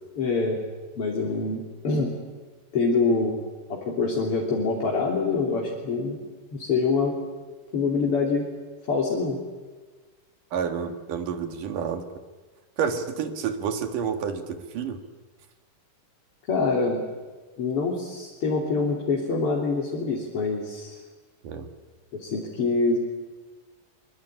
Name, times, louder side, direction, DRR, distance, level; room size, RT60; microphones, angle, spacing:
voice 1, 0.2-0.6 1.0-2.1 2.7-3.4 3.7-6.2 6.5-7.2 7.7-8.5 8.9-9.4 16.5-17.0 17.6-21.0 22.1-23.0, left 4 dB, 40° left, -2 dB, 3.8 m, -25 dB
voice 2, 10.5-12.1 12.8-15.0 21.4-21.7, right 7 dB, 70° right, 7 dB, 3.3 m, -29 dB
24.5 x 24.0 x 9.0 m, 1.3 s
omnidirectional pair, 4.0 m